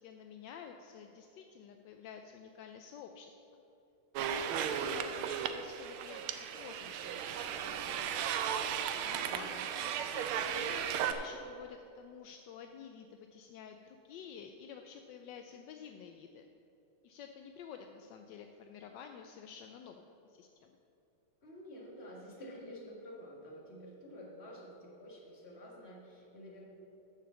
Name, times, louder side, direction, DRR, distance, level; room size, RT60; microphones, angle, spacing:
voice 1, 0.0-3.6 4.2-8.2 9.0-9.5 9.7-16.5 17.0-20.8, left 7 dB, 75° left, 5 dB, 1.0 m, -51 dB
sound 1, 4.2-11.1, right 8 dB, 85° right, 1.5 m, -35 dB
voice 2, 9.1-9.6 21.4-26.6, equal, 30° left, -3 dB, 1.9 m, -50 dB
7.5 x 6.9 x 6.9 m, 2.8 s
omnidirectional pair, 2.3 m